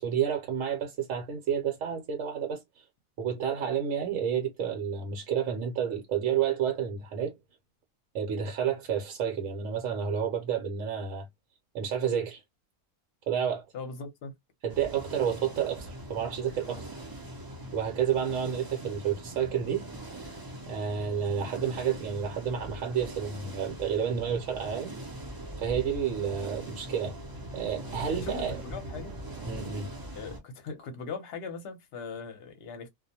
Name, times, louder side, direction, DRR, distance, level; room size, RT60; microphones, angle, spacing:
voice 1, 0.0-2.8 3.2-7.3 8.1-11.3 11.7-12.4 13.3-13.7 14.6-16.9 17.7-20.4 20.7-24.9 25.6-27.2 27.5-28.6 29.4-29.9, right 8 dB, 70° right, 1.0 m, -30 dB
voice 2, 13.7-14.3 28.1-29.1 30.2-32.9, left 5 dB, 55° left, 0.8 m, -40 dB
sound 1, 14.7-30.4, right 1 dB, 30° right, 0.4 m, -42 dB
Bowed string instrument, 25.7-29.5, left 1 dB, 55° right, 0.8 m, -50 dB
2.3 x 2.1 x 2.7 m
omnidirectional pair, 1.4 m